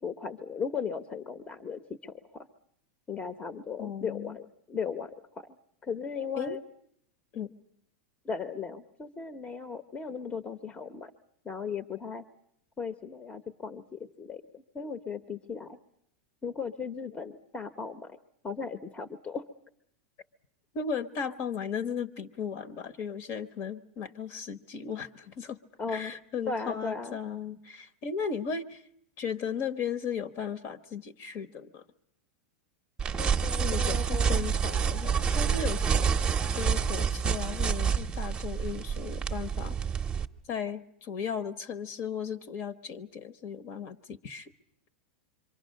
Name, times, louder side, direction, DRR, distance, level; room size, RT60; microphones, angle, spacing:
voice 1, 0.0-2.5 3.1-5.6 5.8-6.6 8.2-11.1 11.4-12.2 12.8-15.8 16.4-18.2 18.4-19.5 25.8-26.1 26.5-27.2 33.2-34.5, left 5 dB, 20° left, 11 dB, 1.0 m, -37 dB
voice 2, 3.8-4.4 6.4-6.6 7.3-7.5 20.7-25.6 25.9-28.8 29.2-31.8 33.6-36.1 36.5-39.8 40.5-44.5, left 6 dB, 45° left, 13 dB, 1.2 m, -36 dB
sound 1, 33.0-40.2, right 7 dB, 15° right, 0.9 m, -28 dB
26.5 x 24.0 x 6.5 m, 0.74 s
supercardioid pair, 130°, 6 cm